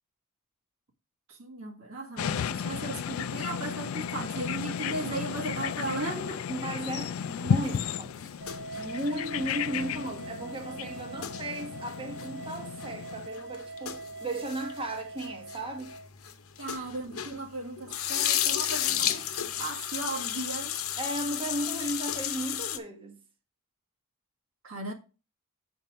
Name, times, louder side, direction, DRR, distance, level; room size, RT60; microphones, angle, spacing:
voice 1, 1.3-6.4 16.6-20.7 24.6-24.9, right 2 dB, 80° right, 1.6 m, -36 dB
sound 1, 2.2-13.3, left 7 dB, 70° left, 0.4 m, -34 dB
voice 2, 6.5-8.3 8.7-15.9 21.0-23.2, right 1 dB, 25° right, 0.9 m, -35 dB
sound 2, 7.6-17.5 17.8-22.8, left 10 dB, 85° left, 0.8 m, -33 dB
sound 3, 8.4-16.1, right 2 dB, 60° right, 0.6 m, -43 dB
7.3 x 4.4 x 5.3 m
head